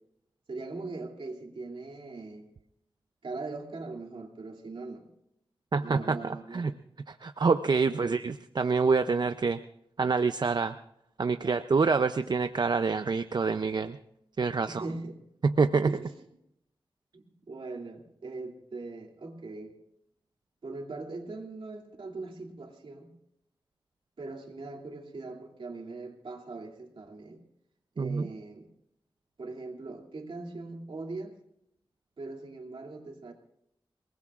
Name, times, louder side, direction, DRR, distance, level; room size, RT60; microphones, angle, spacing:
voice 1, 0.5-2.5 3.2-5.1 5.8-6.8 7.8-8.2 11.4-11.6 14.7-15.2 15.9-16.1 17.1-19.8 20.6-23.1 24.2-27.4 27.9-28.7 29.4-31.3 32.2-33.3, right 3 dB, 70° right, 1 dB, 2.5 m, -41 dB
voice 2, 5.7-6.7 7.1-9.6 10.0-10.8 11.2-14.0 14.4-14.8 15.4-15.9 28.0-28.3, right 4 dB, 50° right, 10 dB, 0.5 m, -26 dB
28.0 x 19.5 x 2.4 m, 0.78 s
wide cardioid pair, 90°, 9 cm